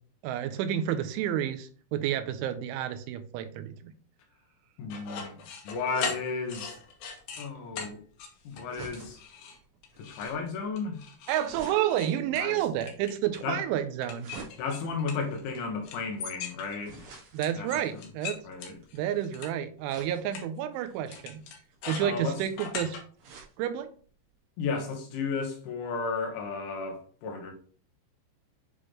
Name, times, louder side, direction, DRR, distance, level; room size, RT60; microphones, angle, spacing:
voice 1, 0.2-3.9 11.3-14.3 17.3-18.4 18.9-21.4 21.9-23.0 23.4-23.9, right 11 dB, 85° right, 3.1 m, -30 dB
voice 2, 4.8-6.8 7.4-8.0 8.5-9.2 10.0-11.0 12.4-12.7 13.4-13.6 14.6-17.1 17.6-18.0 18.4-18.8 22.0-22.4 24.6-27.5, left 4 dB, 80° left, 3.7 m, -34 dB
sound 1, 4.9-7.5 7.8-7.9 8.2-8.7 8.9-9.6 9.8-10.3 10.8-13.5 14.0-15.6 15.8-17.0 17.4-19.5 19.9-20.0 20.3-20.4 21.1-23.0, left 6 dB, 65° left, 2.5 m, -39 dB
sound 2, 6.8-19.2 19.9-20.5 21.0-23.6 24.0-24.1 24.3-24.4, right 4 dB, 70° right, 4.0 m, -51 dB
9.5 x 3.9 x 3.2 m
omnidirectional pair, 5.4 m